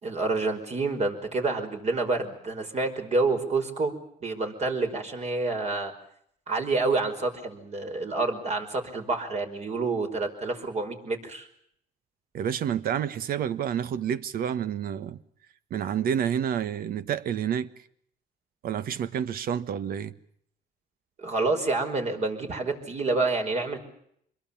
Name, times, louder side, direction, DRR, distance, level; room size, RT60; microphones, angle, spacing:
voice 1, 0.0-5.9 6.5-11.5 21.2-23.8, right 3 dB, 40° right, 5.2 m, -28 dB
voice 2, 12.3-15.2 15.7-17.7 18.6-20.1, right 8 dB, 60° right, 1.3 m, -29 dB
25.5 x 22.0 x 7.3 m
cardioid pair, 110°, 17 cm